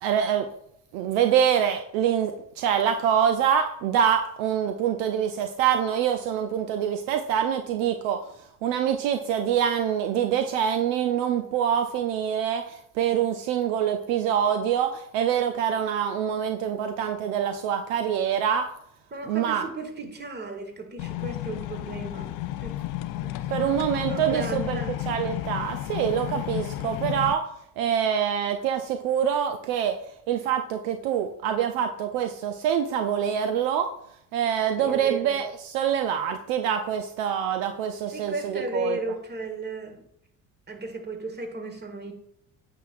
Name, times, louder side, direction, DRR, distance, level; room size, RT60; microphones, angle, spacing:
voice 1, 0.0-0.5 0.9-18.7 19.3-19.6 23.5-24.8 25.1-30.0 30.3-33.9 34.3-39.0, right 9 dB, 65° right, 7 dB, 0.6 m, -25 dB
voice 2, 19.1-22.8 23.2-25.0 34.8-35.4 38.1-40.0 40.7-42.1, right 2 dB, 25° right, 5 dB, 1.5 m, -35 dB
sound 1, 21.0-27.3, left 15 dB, 50° left, 0.5 m, -32 dB
8.9 x 5.9 x 2.5 m, 0.73 s
hypercardioid pair, 55°, 42 cm